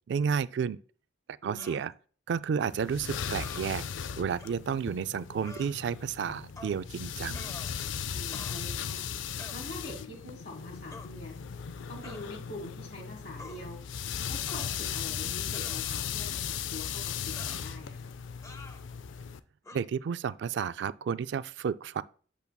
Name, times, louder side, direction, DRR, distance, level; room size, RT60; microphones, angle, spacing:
voice 1, 0.1-0.8 1.4-1.9 2.3-3.8 4.2-7.4 19.7-22.0, right 6 dB, 65° right, 0.3 m, -31 dB
voice 2, 1.4-1.8 8.1-9.1 9.5-11.4 11.9-13.8 14.2-18.1, left 1 dB, 60° left, 1.6 m, -44 dB
sound 1, 1.6-1.9 3.4-3.7 4.4-4.5 5.4-5.7 6.6-6.8 7.3-8.0 8.3-8.8 9.4-9.6 10.9-11.1 12.0-12.3 13.4-13.6 14.5-15.0 15.5-16.2 17.3-17.7 18.4-18.8 19.6-19.8, left 2 dB, 15° left, 0.5 m, -48 dB
sound 2, 2.7-19.4, left 8 dB, 80° left, 0.4 m, -37 dB
8.2 x 6.8 x 2.2 m
head